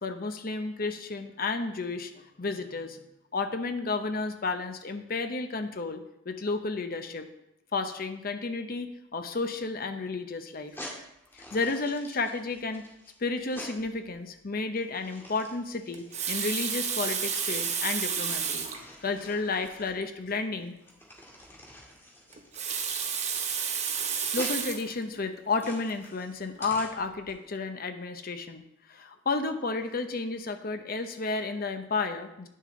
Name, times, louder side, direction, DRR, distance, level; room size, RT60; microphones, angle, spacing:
voice 1, 0.0-3.0 3.3-7.3 7.7-10.7 11.3-12.9 13.2-18.7 19.0-20.8 24.3-28.6 28.9-32.5, left 3 dB, 50° left, 7 dB, 0.8 m, -32 dB
sound 1, 10.6-27.3, equal, 10° left, 1.8 m, -47 dB
Water tap faucet, 15.9-18.9 19.6-19.7 20.0-20.1 22.3-24.9 25.6-25.8, right 7 dB, 35° right, 0.8 m, -31 dB
9.6 x 6.6 x 3.8 m, 0.83 s
head